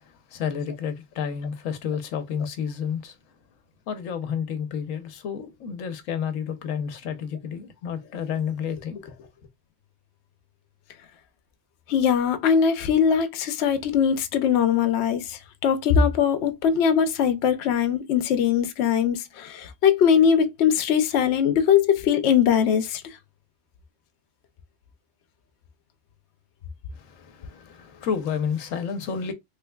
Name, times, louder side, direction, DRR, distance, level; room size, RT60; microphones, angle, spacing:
voice 1, 0.3-3.2 3.9-9.3 26.9-29.3, left 7 dB, 90° left, 1.1 m, -30 dB
voice 2, 11.9-23.0, left 7 dB, 65° left, 0.8 m, -21 dB
3.3 x 3.2 x 2.2 m
omnidirectional pair, 1.3 m